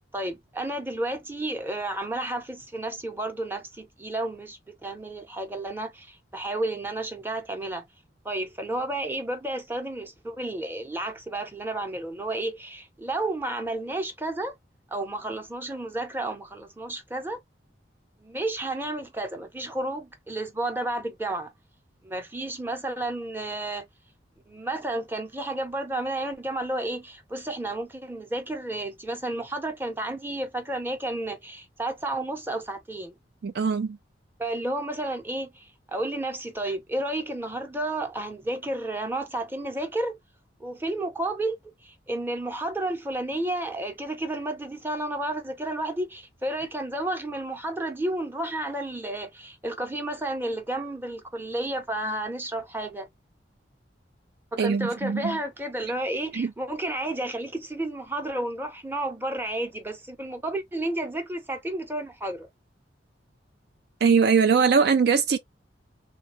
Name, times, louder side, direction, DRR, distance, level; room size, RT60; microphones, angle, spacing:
voice 1, 0.1-7.9 8.2-14.6 14.9-17.4 18.2-21.5 22.0-23.9 24.5-33.1 34.4-40.2 40.6-41.6 41.8-53.1 54.5-62.5, right 1 dB, 10° right, 0.8 m, -31 dB
voice 2, 33.4-34.0 54.6-55.4 56.3-56.5 64.0-65.4, right 5 dB, 60° right, 0.4 m, -21 dB
3.3 x 2.3 x 2.9 m
head